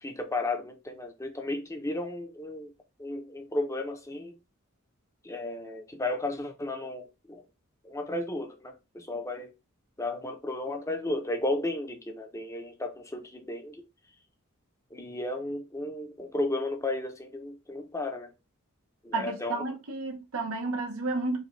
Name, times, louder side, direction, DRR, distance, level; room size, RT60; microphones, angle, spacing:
voice 1, 0.0-2.7 3.0-4.3 5.2-7.5 7.8-9.5 10.0-13.8 14.9-18.3 19.0-19.6, left 2 dB, 15° left, 0.7 m, -34 dB
voice 2, 19.1-21.4, right 3 dB, 80° right, 1.1 m, -31 dB
5.4 x 2.3 x 3.2 m
head